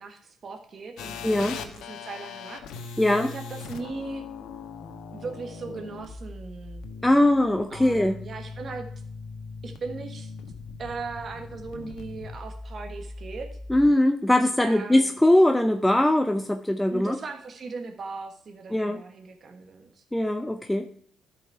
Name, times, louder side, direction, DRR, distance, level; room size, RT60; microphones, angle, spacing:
voice 1, 0.0-4.2 5.1-6.8 7.7-8.9 9.6-10.3 10.8-13.5 14.6-15.2 16.9-20.0, right 4 dB, 50° right, 4 dB, 1.3 m, -38 dB
sound 1, 1.0-13.9, left 4 dB, 90° left, 1.1 m, -40 dB
voice 2, 1.2-1.5 3.0-3.3 7.0-8.2 13.7-17.2 18.7-19.0 20.1-20.8, left 1 dB, 5° left, 6 dB, 0.6 m, -21 dB
12.0 x 5.6 x 4.6 m, 0.66 s
cardioid pair, 90°, 0 cm